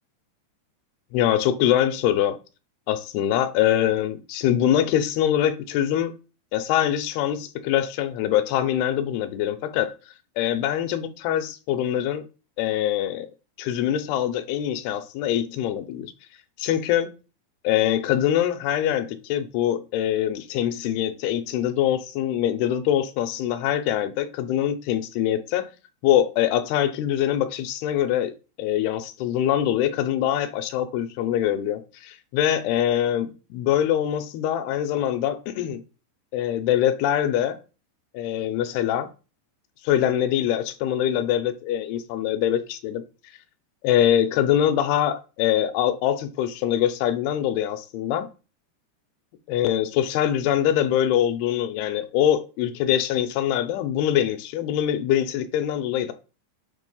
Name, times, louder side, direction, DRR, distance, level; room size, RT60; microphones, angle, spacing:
voice 1, 1.1-2.4 2.9-6.1 6.5-9.9 10.4-12.2 12.6-13.3 13.6-16.1 16.6-17.1 17.6-25.7 26.0-28.3 28.6-35.8 36.3-37.6 38.1-39.1 39.8-43.0 43.8-48.3 49.5-56.1, left 11 dB, 80° left, 2.4 m, -23 dB
7.4 x 2.9 x 5.4 m
omnidirectional pair, 5.0 m